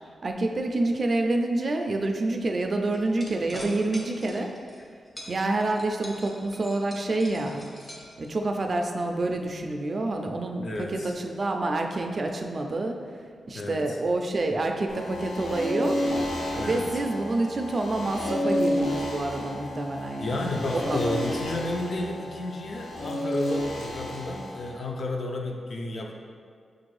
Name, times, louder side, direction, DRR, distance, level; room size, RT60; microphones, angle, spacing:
voice 1, 0.2-4.5 5.3-7.6 8.2-13.0 13.5-16.1 16.5-21.1, right 2 dB, 40° right, 3 dB, 0.3 m, -28 dB
sound 1, 2.9-4.8 5.2-8.6, equal, 20° left, 0.7 m, -43 dB
voice 2, 10.6-11.1 13.5-14.0 16.6-16.9 20.2-26.1, left 2 dB, 55° left, 1 dB, 0.5 m, -32 dB
sound 2, 14.9-24.7, left 1 dB, 90° left, 0.7 m, -31 dB
5.9 x 2.5 x 3.1 m, 2.1 s
wide cardioid pair, 120°, 0 cm